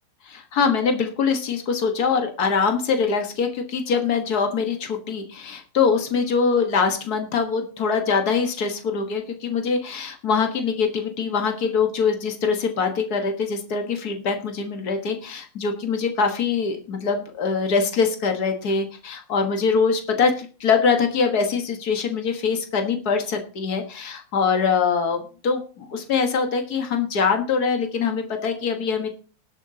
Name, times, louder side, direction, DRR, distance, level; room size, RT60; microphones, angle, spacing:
voice 1, 0.2-29.1, left 5 dB, 75° left, 5 dB, 2.0 m, -23 dB
20.0 x 8.2 x 2.8 m, 0.38 s
omnidirectional pair, 1.7 m